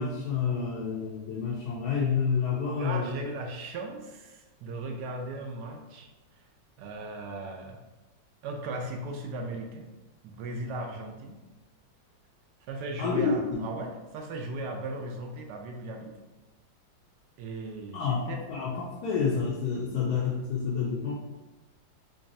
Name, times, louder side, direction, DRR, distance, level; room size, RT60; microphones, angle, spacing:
voice 1, 0.0-3.2 13.0-13.7 17.9-21.1, left 5 dB, 70° left, -4 dB, 1.0 m, -29 dB
voice 2, 2.7-6.1 6.8-7.8 8.4-9.9 10.2-11.4 12.7-16.1 17.4-18.4, right 2 dB, 75° right, 2 dB, 1.0 m, -37 dB
3.9 x 3.2 x 2.6 m, 1.1 s
omnidirectional pair, 2.0 m